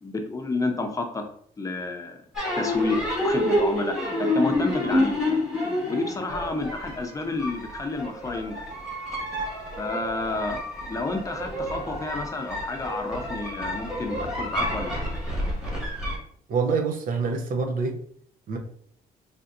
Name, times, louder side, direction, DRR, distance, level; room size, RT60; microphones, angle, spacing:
voice 1, 0.0-1.2 1.6-2.2 2.6-5.2 5.9-8.6 9.8-15.0, left 3 dB, 20° left, 4 dB, 0.7 m, -30 dB
sound 1, 2.3-16.2, left 1 dB, 5° right, 1.5 m, -29 dB
voice 2, 16.5-18.0 18.5-18.6, right 4 dB, 65° right, 5 dB, 0.7 m, -26 dB
4.0 x 3.4 x 2.6 m, 0.63 s
cardioid pair, 110°, 15 cm